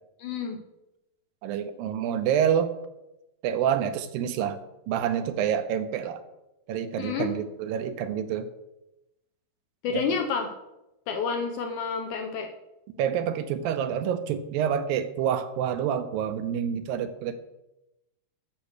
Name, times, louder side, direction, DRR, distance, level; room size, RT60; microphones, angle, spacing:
voice 1, 0.2-0.6 7.0-7.3 9.8-10.5 11.1-12.5, left 5 dB, 75° left, 5 dB, 1.9 m, -29 dB
voice 2, 1.4-2.7 3.4-4.6 4.9-6.2 6.7-8.5 9.9-10.0 13.0-17.4, right 9 dB, 80° right, 10 dB, 2.4 m, -27 dB
10.0 x 6.8 x 6.6 m, 0.93 s
omnidirectional pair, 4.2 m